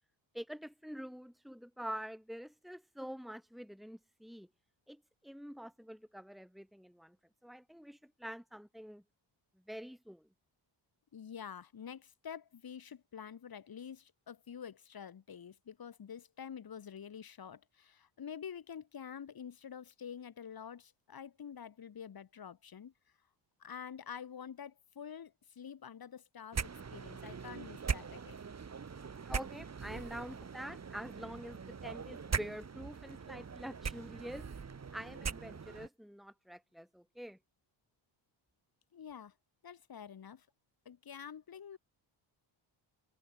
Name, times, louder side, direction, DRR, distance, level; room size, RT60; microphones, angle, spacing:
voice 1, 0.3-4.5 4.9-7.2 7.4-9.0 9.7-10.3 29.2-34.5 34.9-37.4, equal, ahead, 4.5 m, -46 dB
voice 2, 11.1-22.9 23.6-28.4 38.9-39.3 39.6-40.5 40.8-41.8, left 8 dB, 50° left, 6.8 m, -48 dB
sound 1, 26.5-35.9, right 6 dB, 35° right, 4.0 m, -41 dB
cardioid pair, 120°, 47 cm